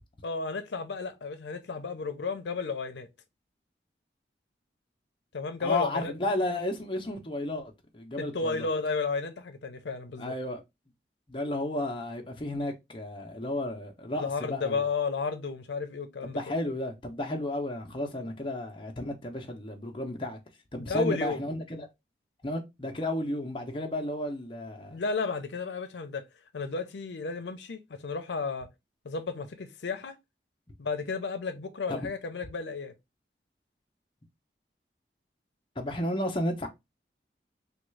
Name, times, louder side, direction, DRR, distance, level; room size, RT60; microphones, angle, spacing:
voice 1, 0.2-3.1 5.3-6.2 8.2-10.3 14.2-16.4 18.2-18.3 20.8-21.4 24.9-26.2 26.5-28.7 29.0-30.1 30.8-32.9, left 4 dB, 85° left, 0.5 m, -33 dB
voice 2, 5.6-8.7 10.2-10.6 11.3-14.8 16.2-20.4 20.7-21.9 22.4-25.0 31.9-32.1 35.8-36.7, left 1 dB, 30° left, 0.6 m, -33 dB
3.5 x 2.3 x 3.1 m
head